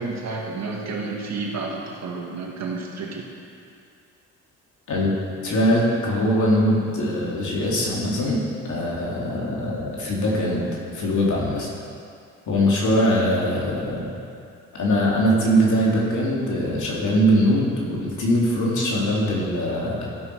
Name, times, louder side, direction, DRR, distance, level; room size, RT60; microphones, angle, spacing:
voice 1, 0.0-3.3, right 3 dB, 55° right, -1 dB, 2.0 m, -30 dB
voice 2, 5.4-10.6 10.9-11.7 12.5-14.1 14.7-20.1, equal, 65° left, -4 dB, 2.8 m, -22 dB
15.5 x 6.3 x 4.7 m, 2.4 s
supercardioid pair, 70°, 33 cm